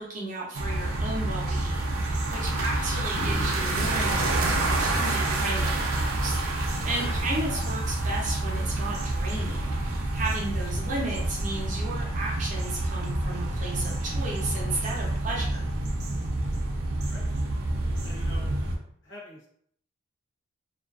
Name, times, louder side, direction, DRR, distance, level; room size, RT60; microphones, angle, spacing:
voice 1, 0.0-15.6, right 2 dB, 35° right, -4 dB, 0.6 m, -34 dB
sound 1, 0.5-18.8, right 2 dB, 85° right, 0.5 m, -28 dB
sound 2, 3.0-6.1 7.6-7.9, equal, 5° right, 0.9 m, -43 dB
voice 2, 6.9-7.2 17.1-17.3 18.0-18.5 19.0-19.5, left 1 dB, 60° left, -5 dB, 0.9 m, -44 dB
2.4 x 2.4 x 2.3 m, 0.65 s
head